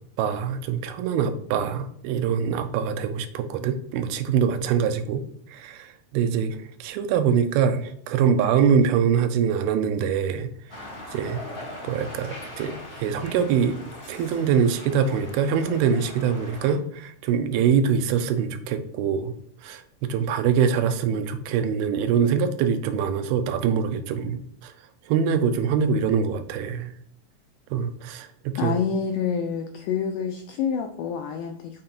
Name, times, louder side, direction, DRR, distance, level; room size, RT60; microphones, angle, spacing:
voice 1, 0.2-10.8 11.1-11.4 11.8-13.8 14.1-19.3 19.6-24.7 25.1-26.9 27.7-28.8, right 7 dB, 90° right, 9 dB, 2.6 m, -24 dB
sound 1, 10.7-16.8, left 1 dB, 45° left, 0.7 m, -40 dB
voice 2, 28.6-31.8, left 6 dB, 85° left, 4 dB, 1.8 m, -27 dB
6.4 x 3.8 x 4.3 m, 0.67 s
omnidirectional pair, 4.3 m